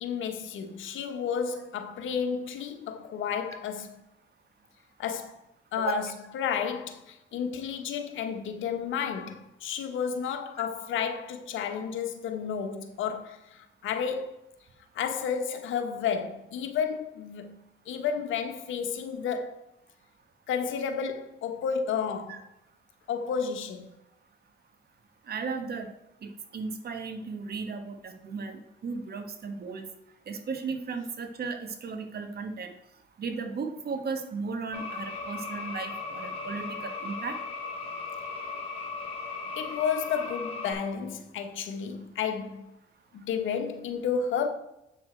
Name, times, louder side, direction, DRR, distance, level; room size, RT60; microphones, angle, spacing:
voice 1, 0.0-4.0 5.0-5.4 5.7-14.4 14.9-17.6 17.9-19.7 20.5-22.4 23.1-23.9 36.3-36.5 39.6-42.7 43.1-44.5, left 7 dB, 80° left, 1.1 m, -32 dB
voice 2, 25.3-25.9 26.2-29.9 30.3-32.7 33.2-37.4, right 4 dB, 50° right, 1.3 m, -35 dB
sound 1, 34.7-40.7, left 4 dB, 30° left, 3.5 m, -37 dB
8.4 x 6.3 x 4.4 m
cardioid pair, 90°, 20 cm